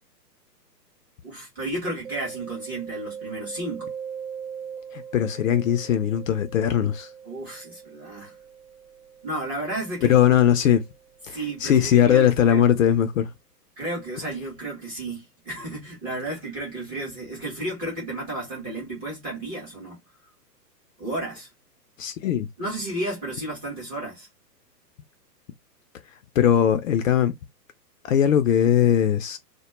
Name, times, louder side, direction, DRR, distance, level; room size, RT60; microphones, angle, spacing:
voice 1, 1.2-3.9 7.3-8.3 9.2-10.2 11.3-12.7 13.8-20.0 21.0-21.5 22.6-24.3, right 1 dB, 10° right, 0.5 m, -32 dB
Mallet percussion, 2.0-11.6, right 7 dB, 55° right, 0.6 m, -41 dB
voice 2, 4.9-7.1 10.0-10.8 11.2-13.3 22.0-22.5 26.4-27.3 28.0-29.4, left 10 dB, 55° left, 0.5 m, -20 dB
2.2 x 2.0 x 2.9 m
hypercardioid pair, 120°, 50 cm